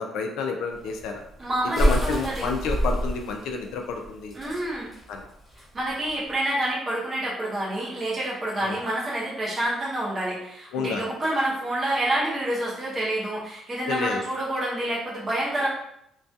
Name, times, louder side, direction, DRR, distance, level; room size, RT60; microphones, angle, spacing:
voice 1, 0.0-1.2 1.8-4.3 5.1-5.2 8.6-8.8 10.7-11.1 13.9-14.2, left 4 dB, 80° left, 3 dB, 0.3 m, -29 dB
sound 1, 0.7-6.3, equal, 15° left, 0.7 m, -27 dB
voice 2, 1.4-2.5 4.3-4.9 5.7-15.7, right 1 dB, 20° right, -7 dB, 0.7 m, -28 dB
2.3 x 2.2 x 2.6 m, 0.76 s
cardioid pair, 170°, 0 cm